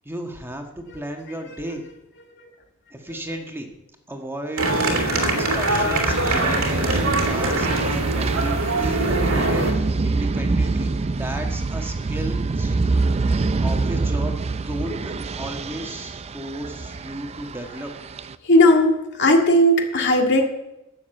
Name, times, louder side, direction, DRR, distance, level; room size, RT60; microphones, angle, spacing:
voice 1, 0.0-1.8 2.9-3.7 4.1-5.0 5.3-10.9 11.2-12.8 13.6-17.9, right 1 dB, 10° right, 3 dB, 1.4 m, -34 dB
sound 1, 4.6-9.7, right 2 dB, 75° right, 2.5 m, -23 dB
sound 2, 6.1-18.3, right 3 dB, 30° right, 0.4 m, -25 dB
voice 2, 18.4-20.5, left 1 dB, 55° left, 2 dB, 2.0 m, -16 dB
11.5 x 7.2 x 7.8 m, 0.92 s
head